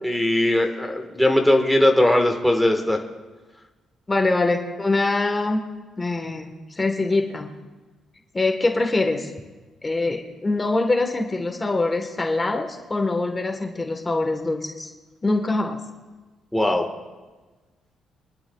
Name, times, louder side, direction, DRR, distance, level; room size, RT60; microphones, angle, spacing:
voice 1, 0.0-3.0 16.5-16.9, left 1 dB, ahead, 2 dB, 1.5 m, -19 dB
voice 2, 4.1-5.6 6.0-7.5 8.3-9.3 9.8-14.9 15.2-15.8, left 2 dB, 25° left, 3 dB, 1.3 m, -24 dB
25.0 x 11.5 x 2.4 m, 1.2 s
cardioid pair, 90°, 0 cm